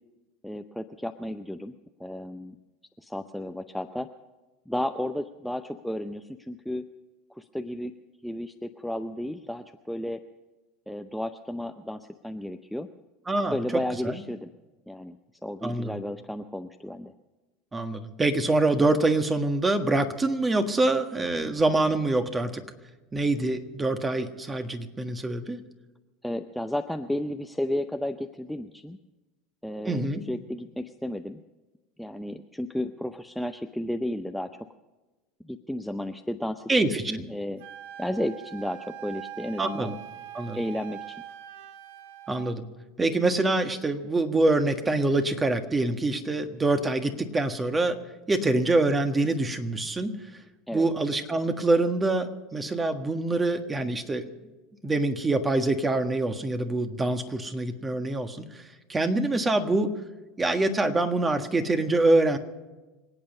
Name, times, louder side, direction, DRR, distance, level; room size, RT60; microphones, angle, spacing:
voice 1, 0.4-1.7 2.0-2.6 3.0-4.1 4.7-6.9 7.3-7.9 8.2-10.2 10.9-12.9 13.5-14.5 14.9-17.1 26.2-29.0 29.6-30.0 30.3-31.4 32.0-34.6 35.4-36.7 37.1-37.6 38.0-40.0 40.5-41.2 50.7-50.9, left 1 dB, ahead, 7 dB, 0.7 m, -33 dB
voice 2, 13.3-13.6 14.0-14.2 15.6-16.0 17.7-22.6 23.1-25.6 29.8-30.2 36.7-37.2 39.6-39.9 40.3-40.6 42.3-42.6 43.0-48.0 48.3-50.2 50.7-54.3 54.8-58.6 58.9-59.9 60.4-62.4, right 2 dB, 20° right, 8 dB, 1.6 m, -25 dB
Wind instrument woodwind instrument, 37.6-42.6, right 12 dB, 70° right, 0.9 m, -42 dB
26.0 x 8.9 x 5.5 m, 1.2 s
hypercardioid pair, 85°, 0 cm